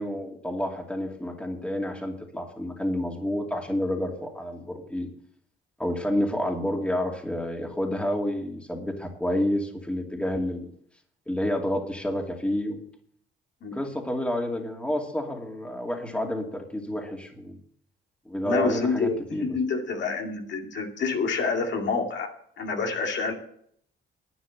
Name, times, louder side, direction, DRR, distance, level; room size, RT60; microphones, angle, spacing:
voice 1, 0.0-5.1 5.8-10.7 11.3-12.8 13.7-17.6 18.3-19.6, left 1 dB, 5° left, 2 dB, 2.6 m, -29 dB
voice 2, 18.4-22.3 22.6-23.3, left 4 dB, 65° left, 2 dB, 2.4 m, -27 dB
11.0 x 9.5 x 7.2 m, 0.65 s
cardioid pair, 90°, 20 cm